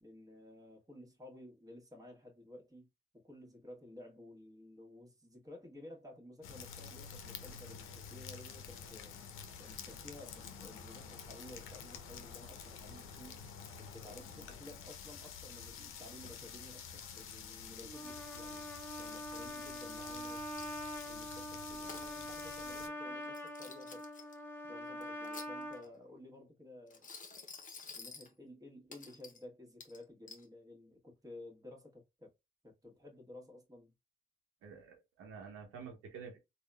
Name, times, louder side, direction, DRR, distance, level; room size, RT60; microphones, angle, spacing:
voice 1, 0.0-2.9 3.1-9.1 9.6-13.4 13.8-18.7 19.0-20.7 21.0-24.1 24.6-27.1 27.9-32.3 32.6-33.9, left 1 dB, 15° right, 1.1 m, -54 dB
sound 1, 6.4-22.9, left 6 dB, 80° left, 0.5 m, -49 dB
Trumpet, 17.8-25.8, equal, 10° left, 1.2 m, -44 dB
Coin (dropping), 20.6-21.1 21.6-22.1 23.2-24.3 25.0-25.9 26.9-28.3 28.9-29.4 29.8-30.4, left 5 dB, 40° left, 0.7 m, -51 dB
voice 2, 34.6-36.4, right 6 dB, 85° right, 0.8 m, -49 dB
3.5 x 2.2 x 2.2 m
supercardioid pair, 55°, 21 cm